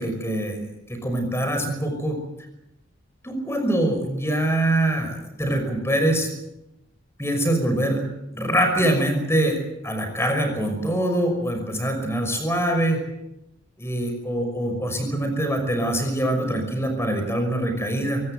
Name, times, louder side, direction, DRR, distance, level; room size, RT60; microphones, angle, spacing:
voice 1, 0.0-2.2 3.2-6.3 7.2-8.0 8.3-13.0 13.8-18.2, right 1 dB, 15° left, 6 dB, 5.8 m, -24 dB
24.5 x 18.0 x 7.9 m, 0.88 s
head